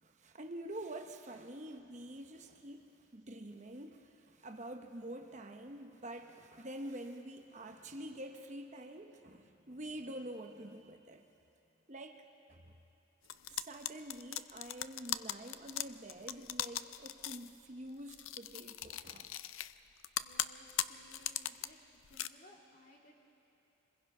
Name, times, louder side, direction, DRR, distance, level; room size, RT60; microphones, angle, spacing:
voice 1, 0.0-11.2 11.9-12.2 12.5-12.7 13.5-19.4, right 1 dB, 35° right, 5 dB, 0.9 m, -47 dB
sound 1, 13.3-17.5 18.1-19.7 20.0-21.7 22.0-22.3, left 12 dB, 75° left, 0.5 m, -39 dB
voice 2, 20.2-21.8 22.1-23.2, left 1 dB, 40° left, -1 dB, 2.5 m, -61 dB
26.5 x 21.0 x 5.5 m, 2.8 s
head